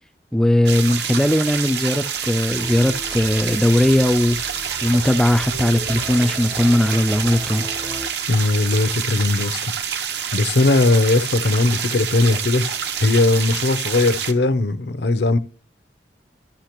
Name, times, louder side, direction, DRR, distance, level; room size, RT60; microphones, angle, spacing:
voice 1, 0.3-4.4 4.8-7.6, left 1 dB, 5° left, 0.3 m, -18 dB
sound 1, 0.7-14.3, right 7 dB, 65° right, 0.8 m, -27 dB
sound 2, 2.4-8.1, right 1 dB, 40° right, 0.8 m, -36 dB
voice 2, 8.3-9.6 10.3-12.7 13.0-15.4, left 2 dB, 65° left, 0.6 m, -18 dB
13.0 x 5.7 x 3.0 m
head